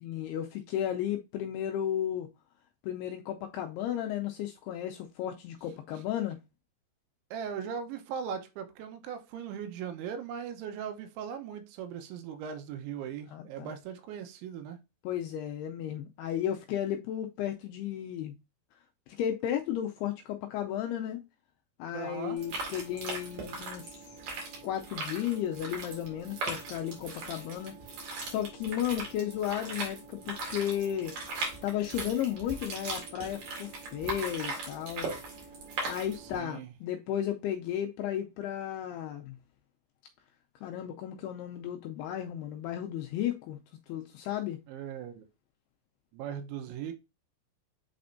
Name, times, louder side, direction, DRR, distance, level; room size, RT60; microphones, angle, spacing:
voice 1, 0.0-2.3 2.8-6.4 13.3-13.7 15.0-18.3 19.2-21.2 21.8-24.1 24.6-27.8 28.2-31.2 31.6-35.1 35.9-39.4 40.6-43.6 43.9-44.6, left 10 dB, 85° left, 2.3 m, -34 dB
voice 2, 7.3-14.8 21.9-22.4 36.1-36.7 44.7-45.2 46.1-46.9, right 8 dB, 90° right, 3.3 m, -39 dB
sound 1, 22.4-36.4, right 3 dB, 55° right, 3.6 m, -39 dB
8.5 x 4.3 x 2.6 m
omnidirectional pair, 5.2 m